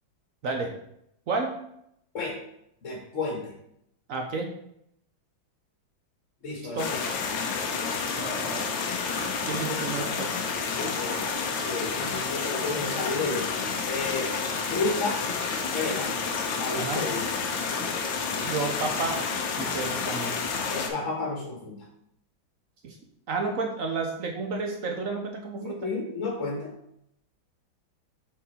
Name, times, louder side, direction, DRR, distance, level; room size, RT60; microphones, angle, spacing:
voice 1, 2.8-3.5 6.4-7.0 10.7-13.5 13.8-14.3 14.7-15.2 15.7-16.1 16.6-17.3 20.7-21.7 25.6-26.7, left 3 dB, 45° left, -2 dB, 1.4 m, -31 dB
voice 2, 4.1-4.5 6.7-6.9 8.1-8.7 9.5-10.3 16.7-17.1 18.4-19.2 19.6-20.3 22.8-23.0 23.3-25.8, right 4 dB, 65° right, 2 dB, 0.8 m, -31 dB
sound 1, 6.8-20.9, left 5 dB, 80° left, 1.6 m, -30 dB
6.6 x 3.9 x 4.1 m, 0.75 s
omnidirectional pair, 2.2 m